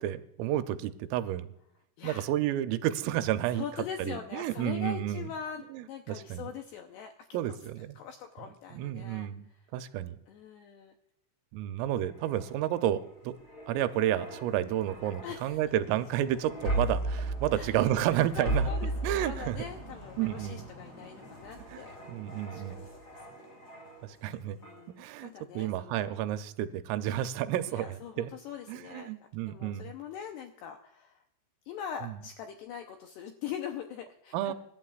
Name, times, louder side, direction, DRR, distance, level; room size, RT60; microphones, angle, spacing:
voice 1, 0.0-1.5 2.0-3.7 4.0-5.3 5.7-6.5 7.3-8.0 8.7-9.5 9.7-10.2 11.5-13.3 13.7-18.7 19.0-19.7 20.2-20.7 21.7-22.9 24.0-24.6 25.0-25.3 25.6-28.3 28.7-29.9 32.0-32.2 34.3-34.5, right 12 dB, 85° right, 10 dB, 3.4 m, -31 dB
voice 2, 3.5-7.1 7.6-9.7 10.3-10.9 15.2-15.6 17.5-17.8 18.1-22.0 22.5-22.8 23.1-23.5 24.5-26.1 27.7-31.2 31.7-34.5, left 8 dB, 90° left, 4 dB, 2.4 m, -42 dB
sound 1, 12.0-24.3 24.6-24.9, right 1 dB, 20° left, 5.3 m, -37 dB
25.5 x 12.0 x 2.4 m, 0.79 s
omnidirectional pair, 5.8 m